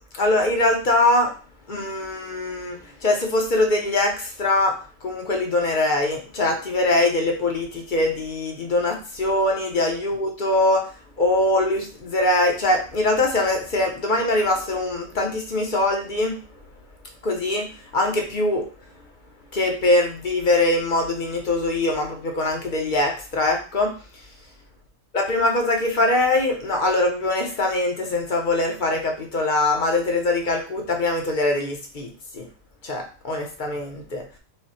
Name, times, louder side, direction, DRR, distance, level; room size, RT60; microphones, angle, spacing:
voice 1, 0.1-1.3 1.7-4.7 5.0-10.9 11.2-16.4 17.2-17.7 17.9-18.7 19.5-23.9 25.1-32.1 32.3-32.5 32.8-34.2, left 2 dB, 45° left, 2 dB, 0.8 m, -22 dB
4.8 x 2.2 x 4.2 m, 0.37 s
omnidirectional pair, 1.3 m